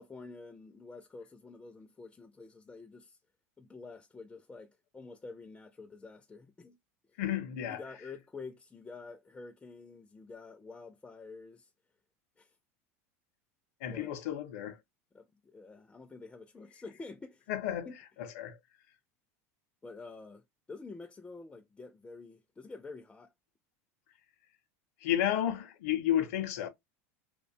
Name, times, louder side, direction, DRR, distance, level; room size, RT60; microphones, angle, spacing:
voice 1, 0.0-3.2 3.6-6.8 7.7-11.7 12.4-12.5 13.9-14.1 15.1-17.5 17.9-18.0 19.8-20.4 20.7-23.3, left 3 dB, 15° left, 0.3 m, -48 dB
voice 2, 7.2-7.8 13.8-14.8 17.5-17.9 18.2-18.6 25.0-26.7, left 11 dB, 75° left, 0.6 m, -32 dB
2.5 x 2.2 x 2.5 m
supercardioid pair, 120°, 8 cm